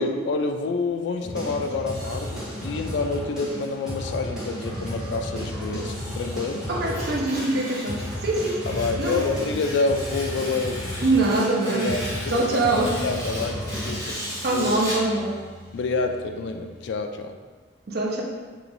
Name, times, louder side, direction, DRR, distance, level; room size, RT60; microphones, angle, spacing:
voice 1, 0.0-6.7 8.7-10.8 11.6-12.6 13.0-14.2 14.5-14.7 15.7-17.4, left 3 dB, 70° left, 7 dB, 0.3 m, -28 dB
sound 1, 1.2-17.0, left 1 dB, 5° right, 1.3 m, -34 dB
voice 2, 6.7-9.3 11.0-12.0 12.3-13.0 14.4-15.4 17.9-18.2, right 2 dB, 60° right, -1 dB, 0.6 m, -24 dB
Tearing, 6.8-15.1, equal, 20° left, 1.4 m, -36 dB
4.9 x 2.9 x 2.5 m, 1.5 s
head